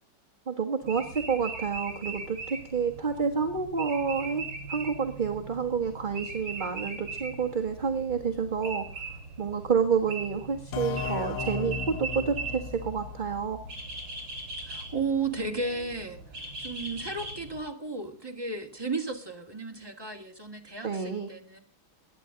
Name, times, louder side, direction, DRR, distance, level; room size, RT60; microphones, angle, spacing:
voice 1, 0.5-9.0 9.4-13.6 20.8-21.3, right 6 dB, 30° right, 4 dB, 1.2 m, -29 dB
sound 1, 0.8-17.6, right 3 dB, 70° right, 5.0 m, -40 dB
sound 2, 10.7-14.3, left 6 dB, 60° left, 1.0 m, -36 dB
voice 2, 14.7-16.2 16.6-21.6, right 3 dB, 10° right, 3 dB, 2.0 m, -34 dB
22.5 x 10.0 x 3.8 m, 0.38 s
omnidirectional pair, 2.2 m